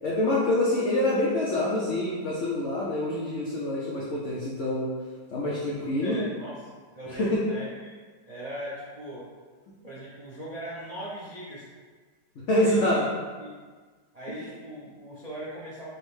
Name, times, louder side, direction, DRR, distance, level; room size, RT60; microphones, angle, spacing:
voice 1, 0.0-4.9 5.3-6.2 7.2-7.4 12.5-13.0, left 1 dB, 75° left, -6 dB, 0.6 m, -26 dB
voice 2, 6.0-6.6 6.9-7.9 8.3-9.3 9.8-11.7 12.5-13.0 13.4-13.5 14.1-15.9, right 1 dB, 65° right, -8 dB, 0.3 m, -39 dB
6.1 x 2.1 x 3.2 m, 1.5 s
omnidirectional pair, 2.0 m